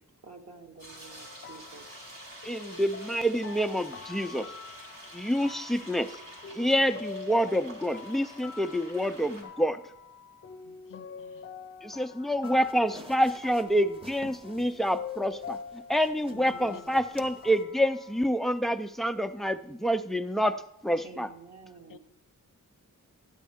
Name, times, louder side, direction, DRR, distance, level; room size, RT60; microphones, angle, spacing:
voice 1, 0.2-2.0 10.6-10.8 21.0-22.0, right 4 dB, 50° right, 3 dB, 1.2 m, -49 dB
sound 1, 0.8-9.4, right 1 dB, 75° right, 2.8 m, -48 dB
sound 2, 1.0-18.3, left 6 dB, 40° left, 0.8 m, -46 dB
voice 2, 2.4-4.5 5.1-6.2 6.5-9.8 11.8-21.3, equal, ahead, 9 dB, 0.3 m, -27 dB
voice 3, 10.9-11.5 16.3-16.9 21.9-22.0, left 9 dB, 75° left, 11 dB, 0.6 m, -47 dB
sound 3, 12.4-17.6, right 2 dB, 15° right, 0.8 m, -51 dB
12.5 x 10.0 x 3.5 m, 0.77 s
wide cardioid pair, 115°, 33 cm